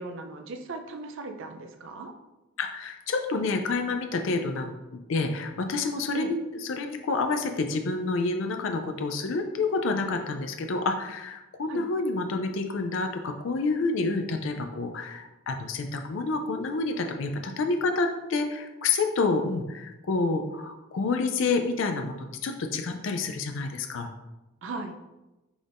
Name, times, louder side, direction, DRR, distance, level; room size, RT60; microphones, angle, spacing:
voice 1, 0.0-2.1 6.1-6.3 11.7-11.8 24.6-25.0, right 2 dB, 65° right, 6 dB, 0.5 m, -37 dB
voice 2, 2.6-24.1, left 3 dB, 65° left, 5 dB, 0.4 m, -28 dB
6.0 x 3.4 x 2.5 m, 1.0 s
head